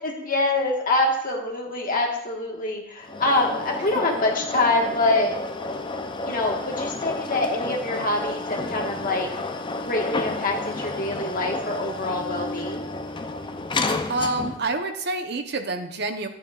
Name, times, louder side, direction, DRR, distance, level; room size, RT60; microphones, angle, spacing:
voice 1, 0.0-5.4 6.3-9.3 9.9-12.9, left 2 dB, 45° left, 0 dB, 1.5 m, -25 dB
sound 1, 3.0-14.7, left 2 dB, 25° left, 0.5 m, -31 dB
voice 2, 14.1-16.3, right 2 dB, 55° right, 6 dB, 0.8 m, -27 dB
11.5 x 9.2 x 2.4 m, 0.78 s
head